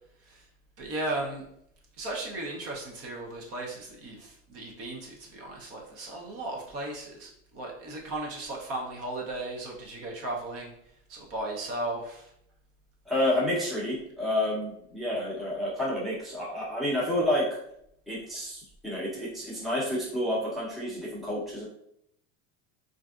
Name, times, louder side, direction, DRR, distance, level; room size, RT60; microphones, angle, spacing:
voice 1, 0.8-1.4 2.0-10.7 11.1-12.3, right 2 dB, 40° right, -1 dB, 0.7 m, -36 dB
voice 2, 13.1-17.5 18.1-21.6, left 1 dB, ahead, -7 dB, 0.7 m, -29 dB
3.3 x 2.6 x 2.4 m, 0.73 s
supercardioid pair, 140°, 36 cm